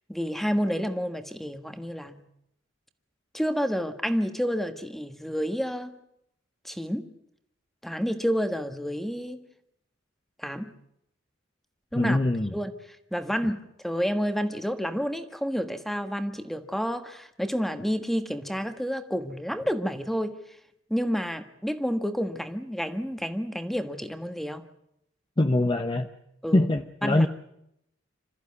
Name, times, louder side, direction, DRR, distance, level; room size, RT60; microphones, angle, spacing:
voice 1, 0.1-2.2 3.3-6.0 6.6-7.1 7.8-9.4 10.4-10.7 11.9-12.2 12.5-12.7 13.1-20.4 20.9-24.7 26.4-26.7 27.0-27.3, equal, ahead, 8 dB, 1.4 m, -29 dB
voice 2, 11.9-12.5 25.4-26.1 26.5-27.3, left 1 dB, 25° left, 6 dB, 0.9 m, -23 dB
26.5 x 14.0 x 9.6 m, 0.79 s
head